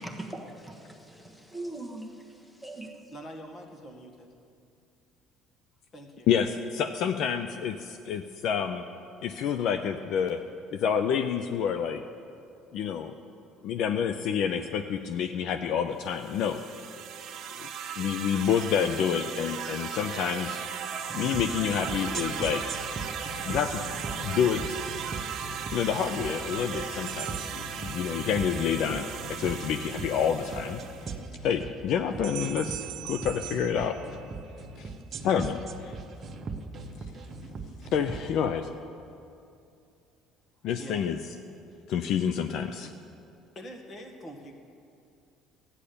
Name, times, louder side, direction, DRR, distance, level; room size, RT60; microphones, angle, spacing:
voice 1, 0.0-3.1, right 1 dB, 5° left, 3 dB, 1.3 m, -41 dB
voice 2, 3.1-4.3 5.9-6.3 40.8-41.2 43.6-44.5, equal, 35° left, 3 dB, 1.9 m, -44 dB
voice 3, 6.3-8.8 9.2-10.4 10.7-12.0 12.7-13.1 13.6-16.6 17.6-17.7 18.0-20.6 21.1-22.6 23.4-23.8 24.1-24.8 25.7-30.8 31.4-34.0 34.8-34.9 35.2-35.9 37.9-38.7 40.6-41.2 41.9-42.9, left 8 dB, 65° left, 8 dB, 0.6 m, -28 dB
sound 1, 16.1-31.2, right 7 dB, 55° right, 1.3 m, -37 dB
sound 2, 21.1-38.3, right 3 dB, 35° right, 1.1 m, -39 dB
sound 3, 27.1-28.6 32.2-34.7, right 17 dB, 75° right, 0.4 m, -42 dB
14.5 x 9.9 x 6.9 m, 2.6 s
cardioid pair, 120°, 0 cm